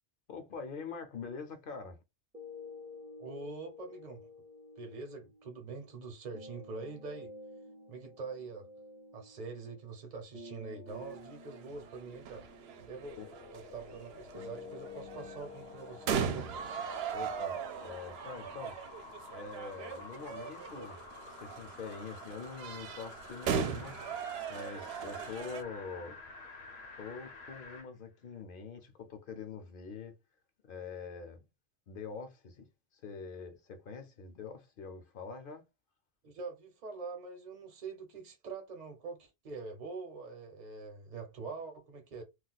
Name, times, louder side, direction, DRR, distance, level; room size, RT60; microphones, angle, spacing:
voice 1, 0.3-2.0 13.2-13.3 17.1-18.8 19.3-21.0 21.3-24.2 24.5-26.2 26.9-30.2 30.6-31.4 31.9-32.7 32.9-35.6, left 5 dB, 60° left, 0.8 m, -44 dB
sound 1, 2.3-18.3, left 3 dB, 10° right, 0.6 m, -52 dB
voice 2, 3.2-4.3 4.8-7.3 7.9-8.7 9.1-12.4 12.9-13.2 13.5-16.5 36.2-42.2, right 4 dB, 50° right, 0.8 m, -44 dB
sound 2, 10.9-25.6, right 7 dB, 80° right, 0.8 m, -39 dB
sound 3, 12.9-27.9 28.3-28.4, left 3 dB, 85° left, 1.0 m, -50 dB
2.4 x 2.3 x 3.9 m
omnidirectional pair, 1.0 m